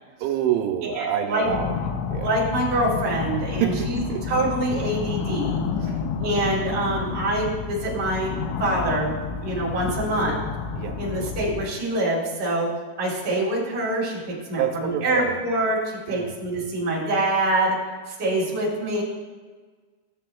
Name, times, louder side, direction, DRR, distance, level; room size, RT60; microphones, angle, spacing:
voice 1, 0.2-1.8 2.1-2.4 3.6-4.2 5.8-6.0 10.8-11.0 14.6-15.4 16.1-16.3, right 10 dB, 90° right, 2 dB, 3.2 m, -27 dB
voice 2, 0.8-1.5 2.1-4.0 4.3-5.9 6.2-9.1 9.4-10.4 11.0-12.7 13.0-17.8 18.1-19.0, right 1 dB, 25° right, -6 dB, 2.3 m, -25 dB
sound 1, 1.5-11.7, left 6 dB, 80° left, 3.0 m, -30 dB
16.5 x 7.6 x 2.3 m, 1.5 s
omnidirectional pair, 5.5 m